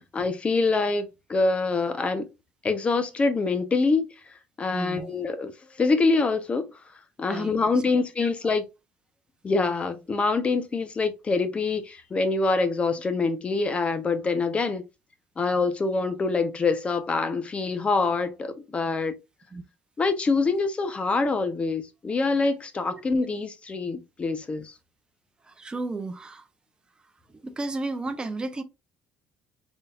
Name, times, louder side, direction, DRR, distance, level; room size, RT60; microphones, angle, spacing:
voice 1, 0.0-2.2 2.6-4.1 4.6-6.7 7.2-8.6 9.4-14.8 15.4-19.1 20.0-24.7, left 3 dB, 25° left, 0.9 m, -25 dB
voice 2, 4.7-5.1 7.3-7.5 8.2-8.3 19.5-19.6 22.9-23.0 25.4-26.5 27.4-28.6, right 2 dB, 20° right, 0.8 m, -33 dB
4.1 x 3.8 x 2.5 m
cardioid pair, 110°, 4 cm